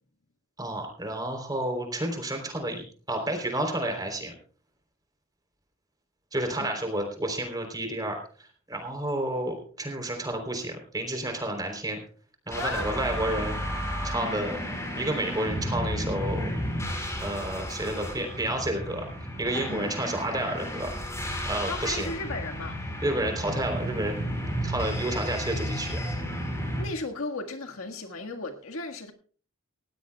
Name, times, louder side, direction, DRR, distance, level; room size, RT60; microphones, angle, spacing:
voice 1, 0.6-4.3 6.3-12.0 12.5-13.6 14.0-14.6 15.0-16.5 17.2-19.1 19.4-20.9 21.5-22.1 23.0-24.2 24.6-26.1, right 1 dB, 20° right, 3.6 m, -30 dB
sound 1, 12.5-26.8, equal, 15° left, 4.7 m, -33 dB
voice 2, 12.6-12.9 19.7-19.9 21.7-22.8 26.8-29.1, left 2 dB, 80° left, 1.7 m, -35 dB
18.5 x 16.5 x 2.3 m
head